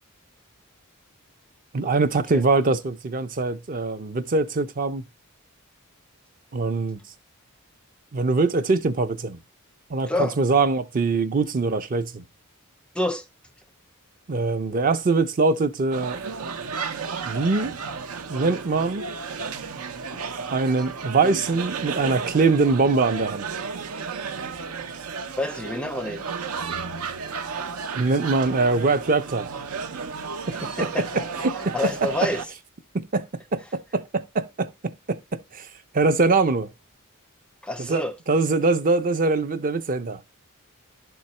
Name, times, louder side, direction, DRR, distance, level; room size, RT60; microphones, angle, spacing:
voice 1, 1.7-5.0 6.5-7.0 8.1-9.4 9.9-12.2 14.3-16.2 17.3-17.7 18.3-19.1 20.5-23.5 27.9-29.5 30.5-32.3 32.9-33.3 33.5-35.7 35.9-36.7 37.8-40.2, right 3 dB, 40° right, 0.5 m, -23 dB
voice 2, 10.1-10.4 12.9-13.2 24.9-25.0 25.4-26.3 30.5-31.2 31.6-32.4 37.6-38.1, left 1 dB, 5° left, 0.5 m, -28 dB
sound 1, 15.9-32.5, right 5 dB, 90° right, 0.7 m, -33 dB
11.0 x 3.9 x 4.2 m
head